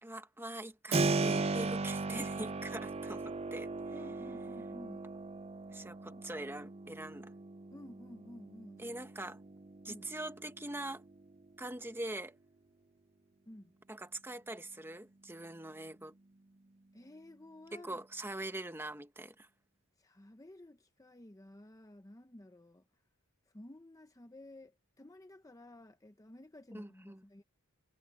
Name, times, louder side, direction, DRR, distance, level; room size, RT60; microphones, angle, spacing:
voice 1, 0.0-3.7 5.7-7.3 8.8-9.4 9.8-11.0 11.6-12.4 13.9-16.2 17.7-19.5 26.7-27.2, right 1 dB, 10° right, 1.2 m, -43 dB
Keyboard (musical), 0.9-11.6, right 3 dB, 30° right, 0.5 m, -38 dB
voice 2, 3.9-5.0 6.1-6.2 7.7-9.0 9.9-10.1 13.5-13.7 16.9-18.0 20.0-22.8 23.5-27.4, left 1 dB, 15° left, 0.7 m, -53 dB
head